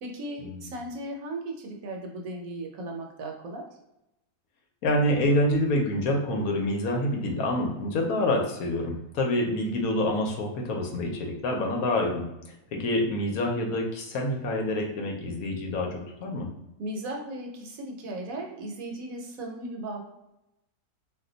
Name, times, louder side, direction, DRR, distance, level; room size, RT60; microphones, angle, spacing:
voice 1, 0.0-3.7 16.8-20.1, right 1 dB, 70° right, 1 dB, 1.0 m, -36 dB
voice 2, 4.8-12.3 12.7-16.5, left 1 dB, 70° left, 1 dB, 1.1 m, -27 dB
2.6 x 2.2 x 3.8 m, 0.88 s
omnidirectional pair, 1.6 m